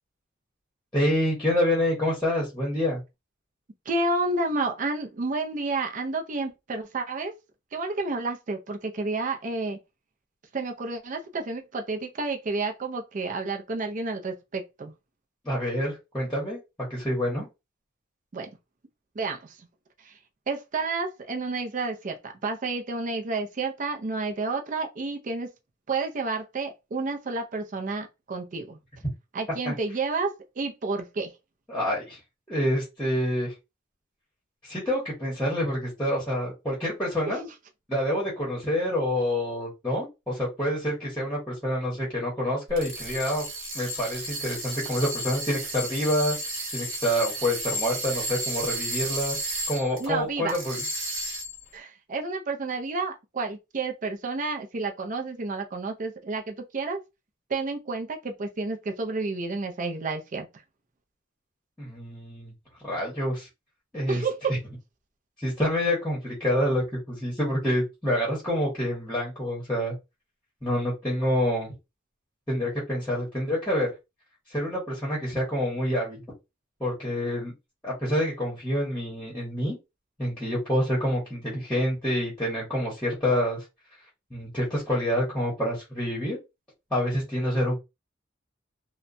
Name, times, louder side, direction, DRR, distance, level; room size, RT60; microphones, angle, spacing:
voice 1, 0.9-3.0 15.4-16.6 16.9-17.5 29.6-29.7 31.7-32.2 32.5-33.5 34.6-37.4 37.9-43.4 43.7-46.4 46.7-49.4 49.7-50.8 61.8-62.5 62.8-63.5 63.9-64.2 64.5-64.6 65.4-69.9 70.6-71.7 72.5-73.9 74.5-76.2 76.8-77.5 77.8-79.7 80.2-83.6 84.3-86.4 86.9-87.8, equal, 5° left, 0.9 m, -27 dB
voice 2, 3.9-7.3 7.7-9.8 10.5-14.9 18.3-18.5 19.2-19.6 20.0-20.1 20.5-25.5 25.9-28.8 29.3-31.3 37.3-37.5 50.0-50.6 51.7-57.0 57.5-60.5 64.1-64.6, right 3 dB, 40° right, 0.4 m, -30 dB
sound 1, 42.7-50.1 50.5-51.7, right 1 dB, 65° right, 1.0 m, -33 dB
2.8 x 2.1 x 2.5 m
head